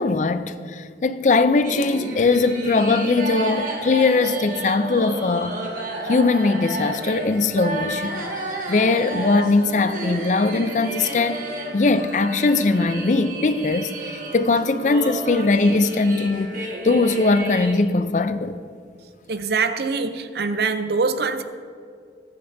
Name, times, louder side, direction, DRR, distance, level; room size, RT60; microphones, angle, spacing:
voice 1, 0.0-5.6 6.0-8.3 8.7-11.4 11.7-18.5, left 3 dB, 40° left, 0.4 m, -20 dB
sound 1, 1.6-17.7, right 2 dB, 45° right, 1.6 m, -31 dB
voice 2, 19.3-21.4, right 4 dB, 60° right, 0.6 m, -23 dB
17.5 x 9.3 x 2.7 m
head